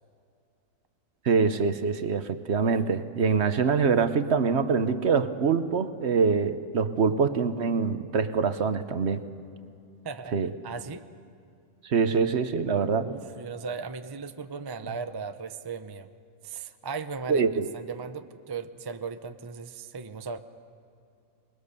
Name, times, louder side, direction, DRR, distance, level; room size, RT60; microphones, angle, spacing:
voice 1, 1.2-9.2 10.3-10.5 11.8-13.1 17.3-17.7, right 5 dB, 60° right, 10 dB, 1.1 m, -24 dB
voice 2, 10.0-11.1 13.0-16.1 16.4-17.5 17.7-20.4, right 5 dB, 30° right, 9 dB, 0.5 m, -37 dB
26.0 x 21.0 x 6.8 m, 2.6 s
omnidirectional pair, 1.4 m